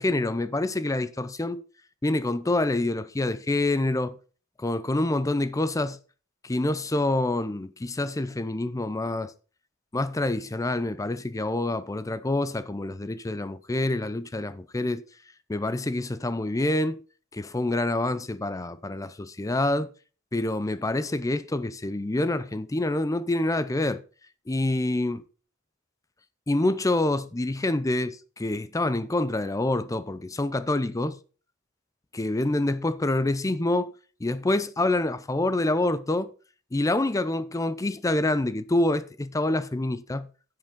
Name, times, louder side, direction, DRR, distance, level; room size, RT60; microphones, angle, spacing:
voice 1, 0.0-1.6 2.0-4.2 4.6-6.0 6.4-9.3 9.9-15.0 15.5-17.0 17.3-19.9 20.3-24.0 24.5-25.2 26.5-31.2 32.1-33.9 34.2-36.3 36.7-40.3, left 2 dB, 15° left, 0.5 m, -26 dB
10.5 x 7.8 x 3.7 m
head